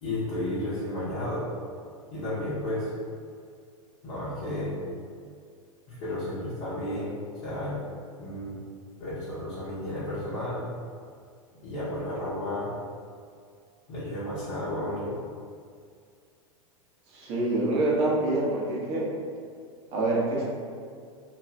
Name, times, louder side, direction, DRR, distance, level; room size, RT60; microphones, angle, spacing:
voice 1, 0.0-1.5 2.1-2.9 4.0-4.8 5.9-7.1 7.4-7.8 8.2-8.6 9.0-10.6 11.6-12.7 13.9-15.1, left 1 dB, 50° left, -12 dB, 0.9 m, -32 dB
voice 2, 17.1-19.1 19.9-20.4, right 2 dB, 35° right, -4 dB, 0.8 m, -26 dB
2.5 x 2.2 x 3.2 m, 2.2 s
figure-of-eight pair, 90°, 18 cm